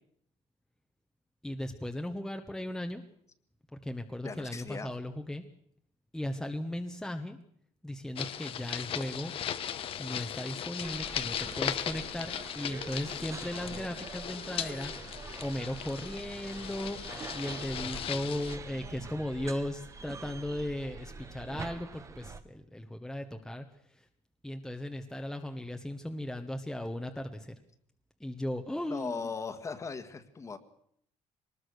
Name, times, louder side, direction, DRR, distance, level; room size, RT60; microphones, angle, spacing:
voice 1, 1.4-3.0 3.7-5.4 6.1-7.4 7.8-9.3 10.0-24.1 24.4-27.6 28.2-29.3, left 1 dB, 5° left, 4 dB, 1.2 m, -37 dB
voice 2, 4.2-4.9 28.9-30.6, left 5 dB, 25° left, 11 dB, 1.8 m, -38 dB
sound 1, 8.2-18.6, left 9 dB, 50° left, 1.2 m, -38 dB
sound 2, 10.8-22.4, right 4 dB, 25° right, 1.2 m, -45 dB
22.5 x 20.0 x 6.5 m, 0.67 s
cardioid pair, 135°, 12 cm